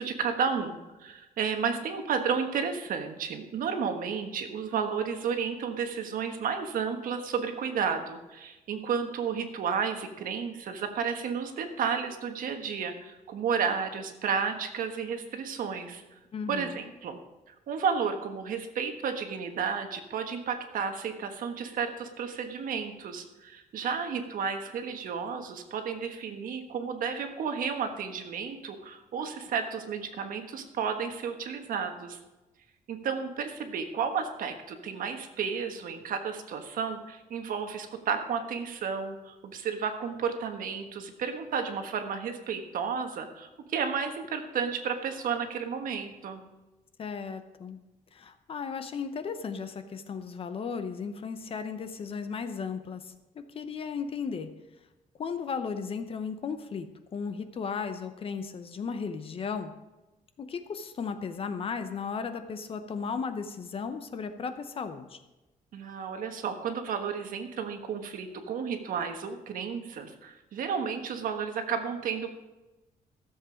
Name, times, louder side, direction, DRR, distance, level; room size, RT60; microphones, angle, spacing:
voice 1, 0.0-16.0 16.5-17.2 17.5-32.2 32.9-46.4 65.7-72.3, right 6 dB, 65° right, 6 dB, 1.3 m, -32 dB
voice 2, 16.3-16.8 47.0-47.8 48.1-54.5 55.2-59.7 60.4-65.2, left 5 dB, 40° left, 9 dB, 0.8 m, -35 dB
14.0 x 7.4 x 5.0 m, 1.1 s
cardioid pair, 165°, 15 cm